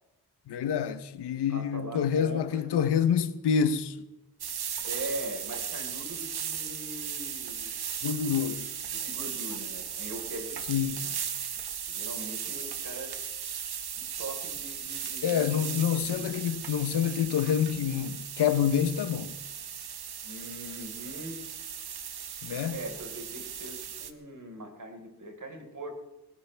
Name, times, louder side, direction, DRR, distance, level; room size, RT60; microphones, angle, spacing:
voice 1, 0.5-4.0 8.0-8.7 10.7-11.0 15.2-19.4 22.4-22.8, left 8 dB, 85° left, 0.9 m, -27 dB
voice 2, 1.5-2.7 4.8-7.7 8.9-11.2 11.9-13.2 14.0-16.4 20.2-21.4 22.7-25.9, right 1 dB, 50° right, 4.5 m, -41 dB
sound 1, 4.4-24.1, right 8 dB, 70° right, 1.4 m, -37 dB
20.5 x 17.5 x 3.4 m
cardioid pair, 55°, 40 cm